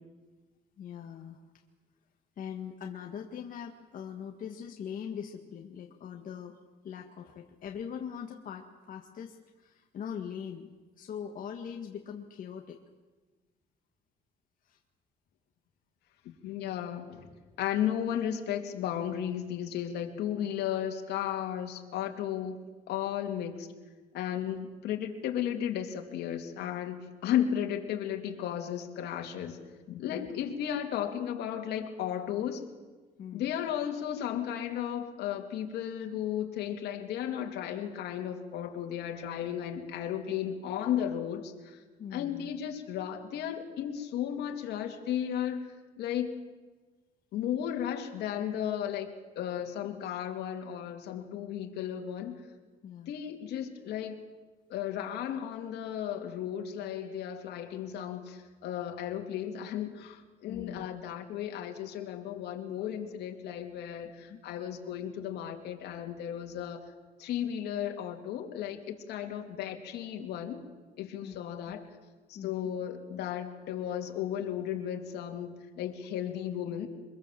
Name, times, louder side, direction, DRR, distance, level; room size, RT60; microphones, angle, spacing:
voice 1, 0.8-1.4 2.4-6.6 6.8-10.7 11.0-12.8 14.6-14.8 24.5-24.6 30.1-30.3 33.2-33.5 42.0-42.5 52.8-53.2 60.5-60.9 64.3-64.4 71.2-71.4 72.3-72.7, left 8 dB, 55° left, 3 dB, 1.8 m, -41 dB
voice 2, 16.2-17.3 17.6-22.6 22.9-23.7 24.1-29.6 29.9-32.7 33.3-41.8 42.1-46.4 47.3-52.4 53.1-54.2 54.7-66.8 67.2-70.6 71.0-71.8 72.3-76.9, left 10 dB, 75° left, 3 dB, 2.9 m, -34 dB
24.0 x 22.0 x 7.7 m, 1.3 s
cardioid pair, 110°, 17 cm